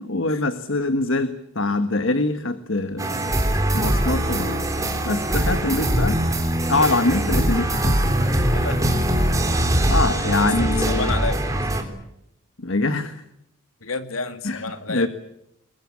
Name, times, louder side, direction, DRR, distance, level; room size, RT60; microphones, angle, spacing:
voice 1, 0.0-3.4 3.7-4.7 5.1-6.2 6.7-8.1 9.9-11.1 12.6-13.2 14.4-14.6 14.9-15.1, left 2 dB, 65° left, 10 dB, 1.5 m, -24 dB
sound 1, 3.0-11.8, right 1 dB, 15° right, 3.5 m, -22 dB
voice 2, 8.5-8.9 10.4-11.7 13.8-15.1, left 3 dB, 80° left, 8 dB, 2.6 m, -30 dB
23.0 x 22.0 x 8.5 m, 0.81 s
head